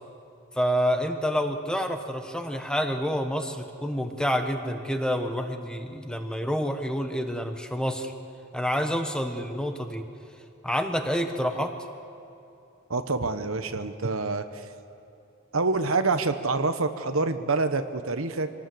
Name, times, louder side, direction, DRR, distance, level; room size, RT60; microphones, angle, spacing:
voice 1, 0.5-8.1 8.5-10.0 10.6-11.7, equal, 5° left, 5 dB, 1.2 m, -28 dB
voice 2, 12.9-14.6 15.5-18.5, right 3 dB, 80° right, 9 dB, 1.2 m, -26 dB
25.5 x 18.5 x 7.9 m, 2.8 s
head